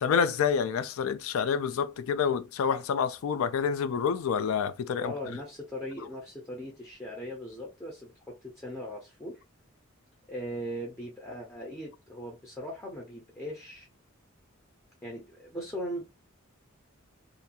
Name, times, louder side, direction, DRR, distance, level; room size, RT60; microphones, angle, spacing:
voice 1, 0.0-5.4, left 6 dB, 70° left, 0.3 m, -28 dB
voice 2, 5.0-9.4 10.3-13.9 15.0-16.0, equal, 15° left, 0.6 m, -39 dB
2.5 x 2.2 x 2.7 m
head